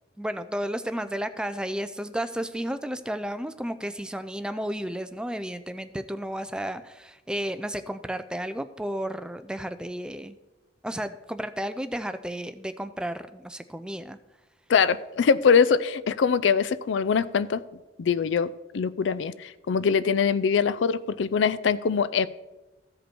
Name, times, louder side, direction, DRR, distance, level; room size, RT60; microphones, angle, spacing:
voice 1, 0.2-10.4 10.8-14.2, equal, 5° right, 11 dB, 0.3 m, -32 dB
voice 2, 14.7-17.6 18.0-22.3, left 6 dB, 80° left, 17 dB, 0.4 m, -23 dB
15.0 x 5.2 x 4.4 m, 1.0 s
head